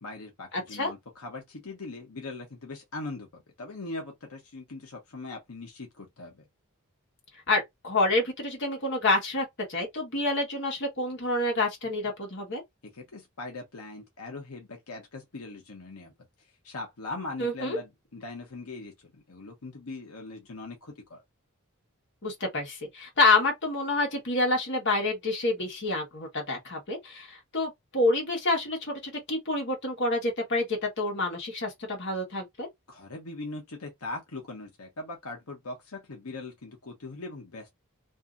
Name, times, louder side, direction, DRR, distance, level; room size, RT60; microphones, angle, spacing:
voice 1, 0.0-6.4 12.8-16.1 16.6-21.2 32.9-37.7, left 2 dB, 90° left, 0.9 m, -40 dB
voice 2, 0.5-0.9 7.5-12.6 17.4-17.8 22.2-32.7, left 2 dB, 55° left, 1.3 m, -28 dB
2.7 x 2.7 x 2.4 m
head